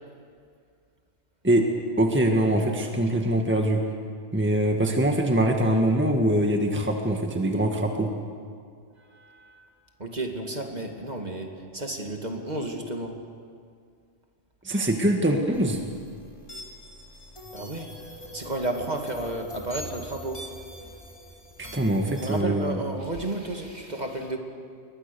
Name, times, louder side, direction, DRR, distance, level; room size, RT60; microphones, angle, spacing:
voice 1, 2.0-3.8 4.3-8.1 14.6-15.8 21.6-22.6, right 1 dB, 10° right, 2 dB, 1.7 m, -23 dB
voice 2, 9.0-9.7 10.0-13.2 17.5-17.9 18.3-20.5 22.2-24.4, right 2 dB, 35° right, 2 dB, 2.4 m, -32 dB
sound 1, 15.5-22.4, equal, 25° left, 3.9 m, -43 dB
28.5 x 23.0 x 7.0 m, 2.2 s
omnidirectional pair, 1.2 m